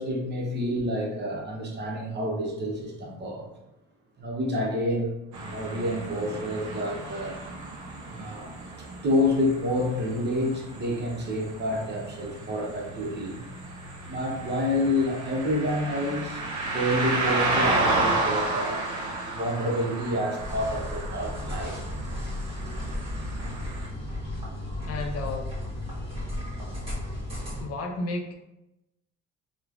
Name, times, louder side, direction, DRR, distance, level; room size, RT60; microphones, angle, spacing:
voice 1, 0.0-3.5 4.2-5.1 5.4-7.4 8.0-8.5 9.0-13.4 14.1-18.8 19.3-21.8, left 1 dB, 35° right, -1 dB, 0.7 m, -28 dB
sound 1, 5.3-23.9, right 2 dB, 75° right, 0.7 m, -32 dB
sound 2, 20.4-27.6, left 1 dB, 20° right, 1.1 m, -34 dB
voice 2, 24.8-25.6 27.6-28.3, left 2 dB, 55° left, 2 dB, 0.5 m, -32 dB
3.0 x 2.1 x 2.4 m, 0.91 s
cardioid pair, 95°, 30 cm